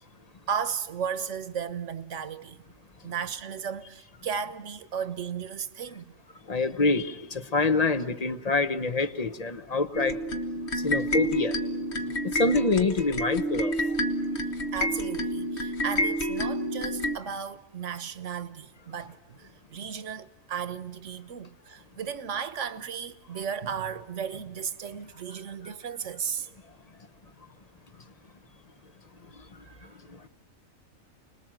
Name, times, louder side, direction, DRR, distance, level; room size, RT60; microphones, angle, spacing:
voice 1, 0.5-2.6 3.0-6.1 14.7-26.5 29.7-29.9, right 7 dB, 65° right, 1.4 m, -35 dB
voice 2, 6.5-10.2 10.8-11.5 12.2-13.7, left 3 dB, 30° left, 1.0 m, -26 dB
sound 1, 9.9-17.2, equal, 55° left, 1.7 m, -29 dB
29.5 x 21.0 x 7.6 m
omnidirectional pair, 1.4 m